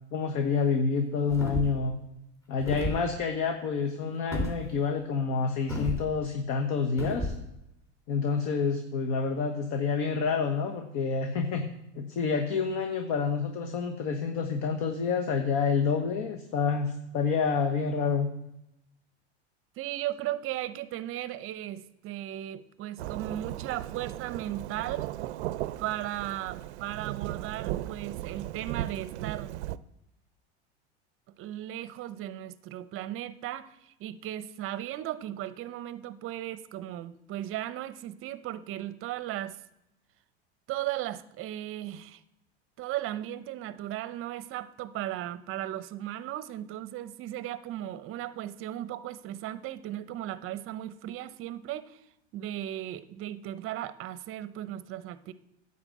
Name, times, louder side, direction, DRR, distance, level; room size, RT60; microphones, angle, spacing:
voice 1, 0.1-2.0 2.5-7.3 8.1-11.7 12.0-18.3, left 5 dB, 55° left, 5 dB, 1.1 m, -28 dB
sound 1, 1.3-1.9 2.6-3.0 4.3-4.6 5.7-6.0 7.0-7.4, left 1 dB, 10° left, 3.4 m, -32 dB
voice 2, 19.8-25.1 25.8-29.5 31.4-39.6 40.7-42.2 42.8-52.0 52.3-55.3, right 13 dB, 40° right, 14 dB, 0.7 m, -36 dB
Thunderstorm / Rain, 23.0-29.8, right 15 dB, 75° right, 0.5 m, -36 dB
9.9 x 4.2 x 7.5 m, 0.85 s
hypercardioid pair, 110°, 34 cm